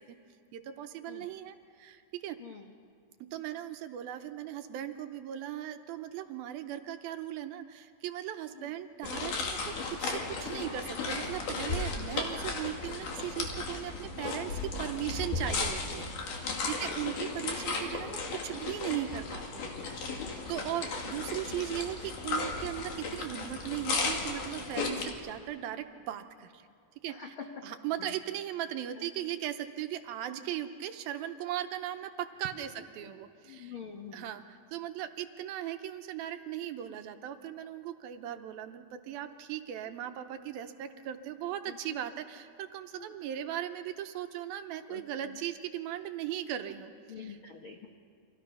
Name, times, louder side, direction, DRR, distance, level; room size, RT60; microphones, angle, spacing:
voice 1, 0.5-2.4 3.2-16.1 16.3-26.7 27.0-27.3 27.6-33.8 34.1-46.9 47.2-47.4, right 11 dB, 75° right, 8 dB, 2.5 m, -38 dB
voice 2, 2.4-2.7 8.5-8.7 16.5-17.0 20.2-20.7 27.1-27.3 28.0-28.2 32.8-32.9 33.4-34.3 39.8-40.0 41.7-42.0 43.0-43.1 44.9-45.4 46.6-46.7 47.1-47.9, left 6 dB, 85° left, 2 dB, 1.1 m, -48 dB
sound 1, 9.0-25.1, left 4 dB, 55° left, 3.5 m, -35 dB
30.0 x 24.5 x 5.5 m, 2.4 s
omnidirectional pair, 4.6 m